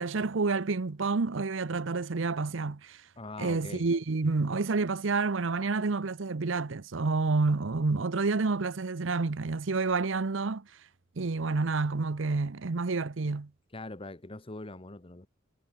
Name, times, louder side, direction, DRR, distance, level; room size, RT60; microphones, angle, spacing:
voice 1, 0.0-3.0 3.4-10.7 11.2-13.5, right 3 dB, 70° right, 0.8 m, -29 dB
voice 2, 3.2-3.9 13.7-15.3, left 2 dB, 25° left, 1.1 m, -42 dB
head